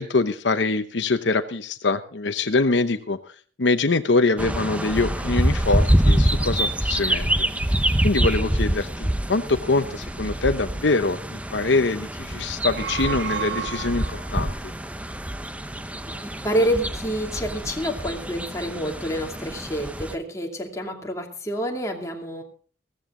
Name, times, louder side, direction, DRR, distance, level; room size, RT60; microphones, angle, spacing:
voice 1, 0.0-3.2 3.6-7.5 8.0-14.7, left 3 dB, 75° left, 9 dB, 0.9 m, -24 dB
sound 1, 4.4-20.2, right 1 dB, 10° right, 0.7 m, -26 dB
sound 2, 12.5-14.4, right 8 dB, 65° right, 1.5 m, -32 dB
voice 2, 16.2-22.4, equal, 15° left, 1 dB, 2.6 m, -28 dB
16.0 x 14.5 x 3.8 m, 0.43 s
head